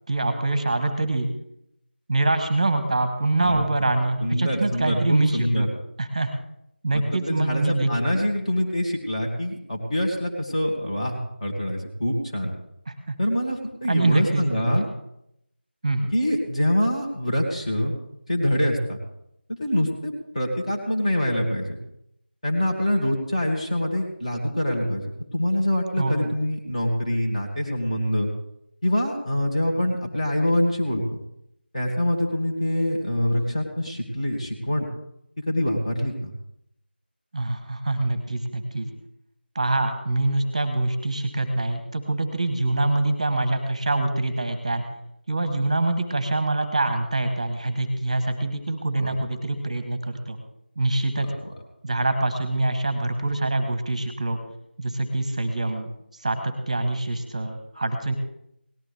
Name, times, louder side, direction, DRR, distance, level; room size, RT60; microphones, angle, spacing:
voice 1, 0.1-1.3 2.1-5.7 6.0-6.3 6.8-7.9 12.9-13.0 13.9-14.8 15.8-16.1 26.0-26.3 37.3-38.9 39.5-44.8 45.3-50.4 50.8-51.3 51.8-54.4 54.8-58.2, right 2 dB, 20° right, 8 dB, 1.1 m, -25 dB
voice 2, 4.2-5.7 6.9-12.5 13.2-14.8 16.1-17.9 18.3-19.0 19.6-21.8 22.4-28.3 28.8-31.2 31.7-34.9 35.5-36.3 49.0-49.2 51.1-51.5, left 1 dB, 35° left, -1 dB, 2.2 m, -25 dB
18.0 x 12.5 x 3.5 m, 0.78 s
figure-of-eight pair, 170°, 6 cm